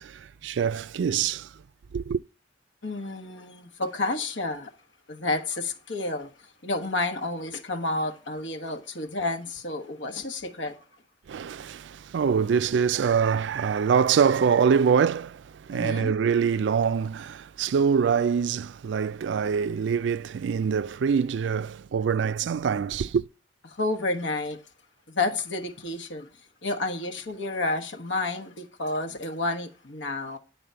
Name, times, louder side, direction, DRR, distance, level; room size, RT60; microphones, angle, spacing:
voice 1, 0.0-1.5 1.9-2.2 11.3-23.3, right 6 dB, 75° right, 0.3 m, -24 dB
voice 2, 2.8-4.7 5.1-10.8 15.7-16.1 23.7-24.6 25.1-26.3 26.6-30.4, left 2 dB, 90° left, 1.3 m, -30 dB
10.0 x 4.0 x 6.8 m
head